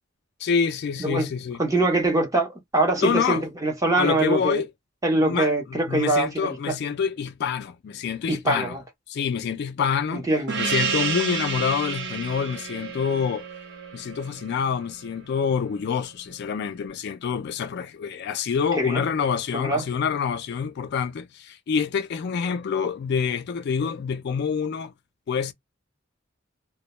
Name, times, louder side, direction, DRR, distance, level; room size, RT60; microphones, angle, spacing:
voice 1, 0.4-1.6 3.0-3.4 4.0-4.7 5.2-8.8 9.1-10.3 10.6-13.5 13.9-24.9 25.3-25.5, left 6 dB, 55° left, 0.3 m, -26 dB
voice 2, 1.6-4.6 5.0-6.7 8.3-8.8 10.1-10.5 18.8-19.0 19.5-19.8, right 2 dB, 15° right, 0.7 m, -23 dB
Gong, 10.5-15.5, right 5 dB, 60° right, 0.5 m, -30 dB
2.2 x 2.1 x 2.9 m
head